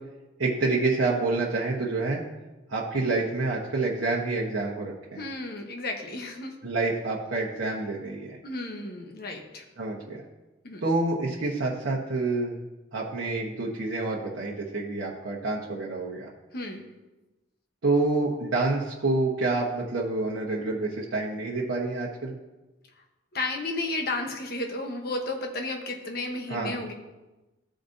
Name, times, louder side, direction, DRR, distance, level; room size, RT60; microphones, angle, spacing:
voice 1, 0.4-2.2 2.7-5.2 6.6-8.4 9.8-10.2 10.8-12.5 12.9-16.3 17.8-22.3 26.5-26.7, right 3 dB, 90° right, -4 dB, 1.1 m, -28 dB
voice 2, 5.2-6.5 8.4-9.6 10.6-10.8 16.5-16.9 23.3-26.9, left 2 dB, 55° left, 3 dB, 1.0 m, -33 dB
14.0 x 5.1 x 2.7 m, 1.1 s
head